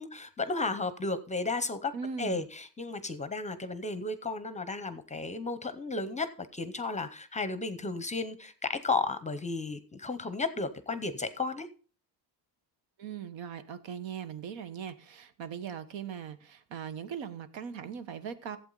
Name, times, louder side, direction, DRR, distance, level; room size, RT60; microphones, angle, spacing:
voice 1, 0.0-1.9 2.2-11.7, left 3 dB, 15° left, 0.6 m, -33 dB
voice 2, 1.9-2.4 13.0-18.6, right 7 dB, 80° right, 1.3 m, -39 dB
15.0 x 8.2 x 3.9 m
cardioid pair, 165°, 45 cm